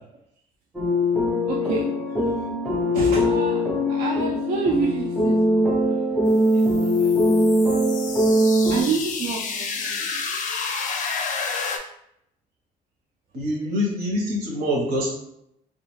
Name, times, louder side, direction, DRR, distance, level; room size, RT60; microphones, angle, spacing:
sound 1, 0.7-8.8, left 1 dB, ahead, 0.5 m, -21 dB
voice 1, 1.4-1.9 2.2-2.5 2.9-7.3 8.7-10.2, right 4 dB, 55° right, -2 dB, 0.4 m, -29 dB
sound 2, 6.3-11.8, left 5 dB, 50° left, 0.4 m, -30 dB
voice 2, 13.3-15.2, left 1 dB, 75° right, -1 dB, 1.0 m, -25 dB
2.4 x 2.3 x 3.1 m, 0.77 s
cardioid pair, 110°, 17 cm